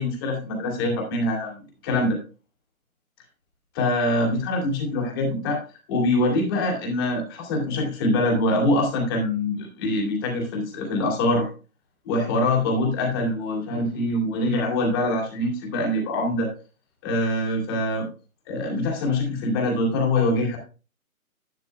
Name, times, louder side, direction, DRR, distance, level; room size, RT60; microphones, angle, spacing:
voice 1, 0.0-2.2 3.7-5.6 5.9-11.5 12.1-16.5 17.0-18.1 18.5-20.6, left 1 dB, 15° left, 0 dB, 2.3 m, -24 dB
11.0 x 8.8 x 2.2 m, 0.34 s
figure-of-eight pair, 155°, 43 cm